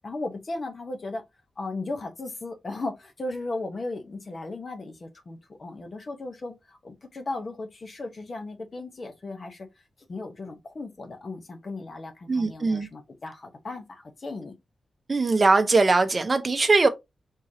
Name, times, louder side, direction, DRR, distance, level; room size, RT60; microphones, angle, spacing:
voice 1, 0.0-1.2 1.6-9.7 10.1-14.5, left 2 dB, 35° left, 1.0 m, -36 dB
voice 2, 12.3-12.9 15.1-16.9, right 3 dB, 30° right, 0.7 m, -21 dB
4.6 x 3.7 x 2.8 m
wide cardioid pair, 175°, 0 cm